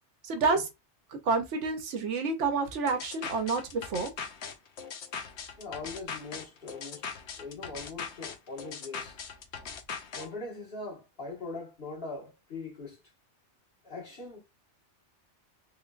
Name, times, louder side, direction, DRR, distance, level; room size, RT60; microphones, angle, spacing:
voice 1, 0.2-0.7 1.2-4.1, right 4 dB, 85° right, 1.0 m, -29 dB
sound 1, 2.9-10.3, left 6 dB, 75° left, 1.0 m, -40 dB
voice 2, 5.6-7.1 7.4-9.2 10.1-13.0 13.8-14.4, left 3 dB, 50° left, 1.7 m, -41 dB
3.6 x 3.2 x 2.3 m
omnidirectional pair, 1.2 m